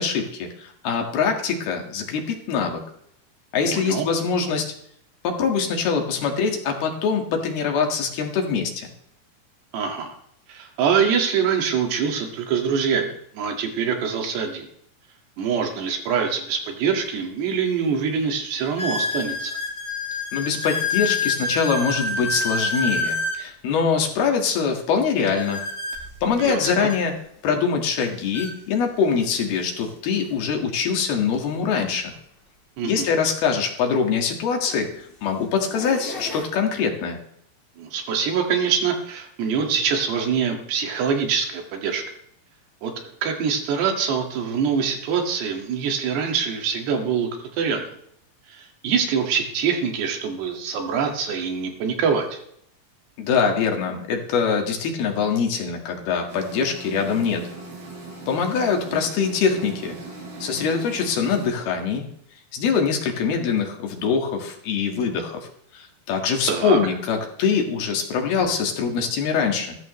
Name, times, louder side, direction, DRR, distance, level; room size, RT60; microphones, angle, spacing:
voice 1, 0.0-2.8 3.5-4.7 5.2-8.9 20.3-25.6 26.2-27.2 27.4-32.1 32.8-37.2 53.2-57.4 58.3-60.0 60.4-62.1 62.5-65.4 65.7-69.8, left 6 dB, 70° left, 3 dB, 3.7 m, -23 dB
voice 2, 3.6-4.1 9.7-10.2 10.5-14.7 15.4-19.5 26.4-26.9 32.8-33.1 37.8-42.0 42.8-47.3 47.6-47.9 48.5-52.4 66.5-66.8, right 6 dB, 80° right, 3 dB, 4.2 m, -24 dB
sound 1, 17.1-17.2 17.8-17.9 18.8-23.4 25.3-27.0 28.0-28.1 28.3-28.5 29.3-29.4 31.6-31.7 33.8-33.9 34.6-35.0 35.5-36.4, left 3 dB, 30° left, 0.9 m, -28 dB
sound 2, 56.3-61.5, right 3 dB, 65° right, 6.4 m, -39 dB
20.0 x 14.0 x 3.2 m, 0.70 s
omnidirectional pair, 4.8 m